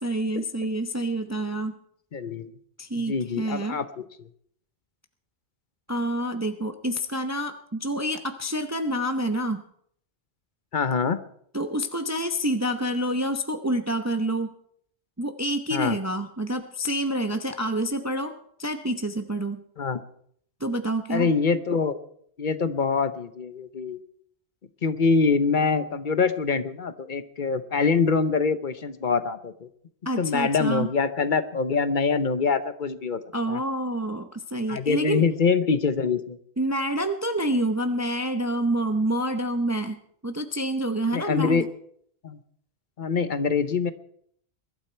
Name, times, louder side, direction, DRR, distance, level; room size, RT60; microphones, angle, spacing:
voice 1, 0.0-1.8 2.8-3.8 5.9-9.6 11.5-14.5 15.2-19.6 20.6-21.3 30.0-30.9 33.3-35.3 36.6-41.7, right 1 dB, 15° right, 7 dB, 0.7 m, -27 dB
voice 2, 2.1-2.5 3.1-4.3 10.7-11.2 15.7-16.0 19.8-20.0 21.1-22.0 22.4-24.0 24.8-29.7 30.2-33.2 33.5-33.6 34.7-36.4 41.1-41.7 42.2-42.4 43.0-43.9, left 5 dB, 50° left, 13 dB, 0.9 m, -24 dB
22.0 x 12.5 x 4.4 m, 0.66 s
omnidirectional pair, 1.1 m